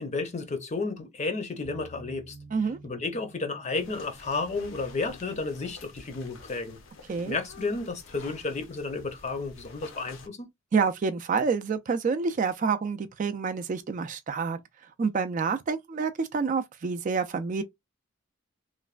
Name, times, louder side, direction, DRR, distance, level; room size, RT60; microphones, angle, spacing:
voice 1, 0.0-2.4 2.8-6.8 7.2-10.4, left 3 dB, 35° left, 0.6 m, -32 dB
sound 1, 1.6-5.4, right 2 dB, 20° right, 0.9 m, -51 dB
sound 2, 3.7-10.3, left 3 dB, 85° left, 0.7 m, -49 dB
voice 2, 10.7-14.6 15.0-17.6, right 5 dB, 40° right, 0.3 m, -28 dB
3.2 x 2.1 x 2.3 m
head